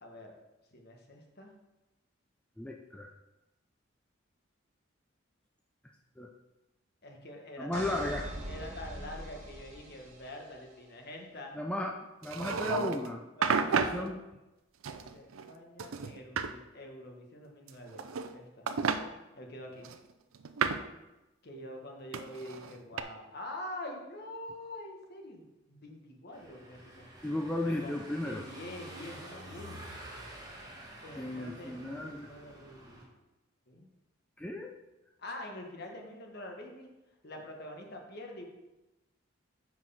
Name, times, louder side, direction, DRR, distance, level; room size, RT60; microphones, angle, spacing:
voice 1, 0.0-0.3 0.7-1.5 7.0-7.9 8.5-11.6 13.4-14.1 15.1-18.7 19.3-19.9 21.4-27.1 27.6-29.7 31.0-33.1 33.7-33.9 35.2-36.9 37.2-38.5, left 1 dB, 50° left, 2 dB, 1.3 m, -45 dB
voice 2, 2.6-3.1 6.2-6.3 7.6-8.3 11.6-13.2 13.7-14.2 27.2-28.4 31.2-32.3 34.4-34.7, left 1 dB, 5° left, 1 dB, 0.4 m, -35 dB
sound 1, 7.7-10.6, equal, 35° right, 1.5 m, -43 dB
sound 2, 12.2-13.1 13.4-14.0 14.8-15.5 15.8-16.5 17.7-18.3 18.7-19.0 19.8-20.9 22.1-23.0, right 5 dB, 85° right, 0.5 m, -32 dB
Car passing by / Engine, 26.3-33.0, right 1 dB, 20° right, 1.7 m, -49 dB
7.4 x 4.6 x 5.6 m, 1.0 s
head